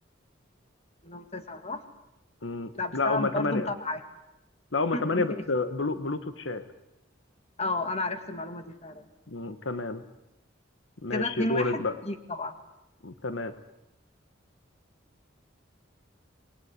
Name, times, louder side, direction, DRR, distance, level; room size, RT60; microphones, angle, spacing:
voice 1, 1.0-1.8 2.7-4.0 4.9-5.4 7.6-9.0 11.1-12.5, left 2 dB, 35° left, 8 dB, 2.3 m, -32 dB
voice 2, 2.4-3.7 4.7-6.6 9.3-10.0 11.0-11.9 13.0-13.5, left 3 dB, 75° left, 10 dB, 1.3 m, -29 dB
27.5 x 20.5 x 9.7 m, 0.92 s
head